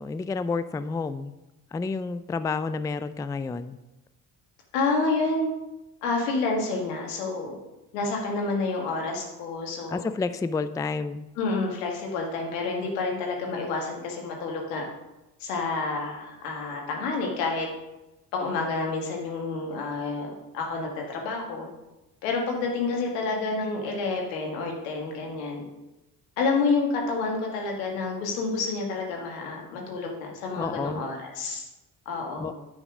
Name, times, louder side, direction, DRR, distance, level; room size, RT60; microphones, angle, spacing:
voice 1, 0.0-1.3 1.7-3.8 9.9-11.3 30.6-31.0 32.4-32.5, left 4 dB, 10° left, 13 dB, 0.3 m, -30 dB
voice 2, 4.7-5.5 6.0-7.6 7.9-10.1 11.4-14.9 15.4-17.7 18.3-21.7 22.2-25.6 26.4-31.6 32.1-32.5, left 3 dB, 80° left, 1 dB, 1.9 m, -29 dB
9.8 x 5.5 x 5.0 m, 0.99 s
hypercardioid pair, 50°, 46 cm